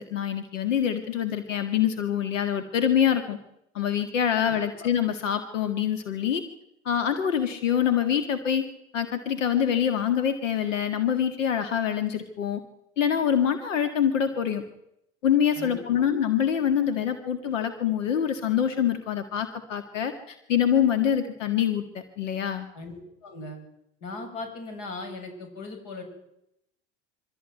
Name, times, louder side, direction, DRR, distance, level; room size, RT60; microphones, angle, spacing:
voice 1, 0.0-3.4 3.7-6.4 6.9-8.6 8.9-12.6 13.0-14.6 15.2-22.7, left 9 dB, 85° left, 8 dB, 1.9 m, -25 dB
voice 2, 15.6-16.1 22.7-23.0 23.2-23.6 24.0-26.0, left 3 dB, 60° left, 6 dB, 7.7 m, -38 dB
24.0 x 15.0 x 9.3 m, 0.83 s
hypercardioid pair, 80°, 37 cm